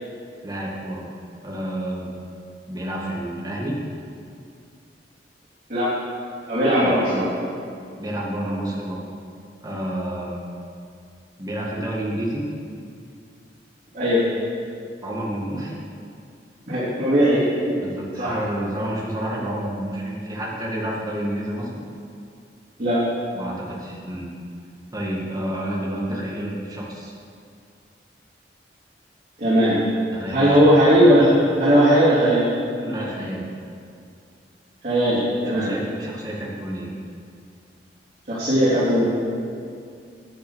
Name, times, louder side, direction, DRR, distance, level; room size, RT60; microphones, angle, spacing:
voice 1, 0.4-1.1 1.4-2.1 2.7-3.8 6.8-6.9 8.0-9.0 9.6-10.4 11.4-12.4 15.0-15.8 17.8-21.8 23.3-24.3 24.9-27.1 29.7-29.8 30.1-30.6 32.8-33.4 35.1-35.2 35.4-36.9, right 1 dB, 20° right, -3 dB, 2.0 m, -29 dB
voice 2, 6.5-7.3 13.9-14.2 16.7-17.4 17.7-17.8 18.2-18.4 22.8-23.0 26.1-26.2 29.4-29.8 30.3-32.4 34.8-35.7 38.3-39.1, equal, 45° right, -12 dB, 3.4 m, -18 dB
9.9 x 9.4 x 6.4 m, 2.3 s
head